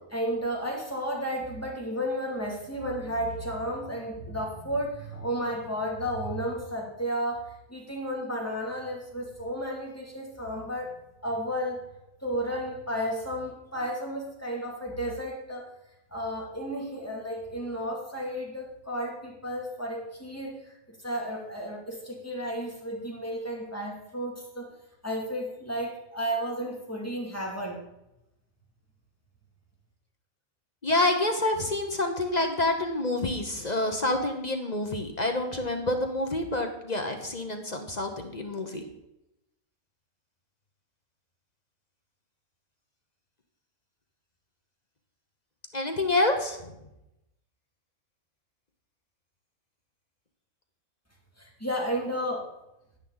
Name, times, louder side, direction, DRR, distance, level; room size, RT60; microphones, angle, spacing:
voice 1, 0.1-11.0 11.2-11.8 12.2-15.7 16.1-24.7 25.0-27.8 51.4-52.5, equal, 10° left, -2 dB, 2.5 m, -33 dB
voice 2, 30.8-38.8 45.7-46.6, left 2 dB, 30° left, 4 dB, 1.0 m, -27 dB
10.5 x 10.0 x 4.0 m, 0.88 s
omnidirectional pair, 1.6 m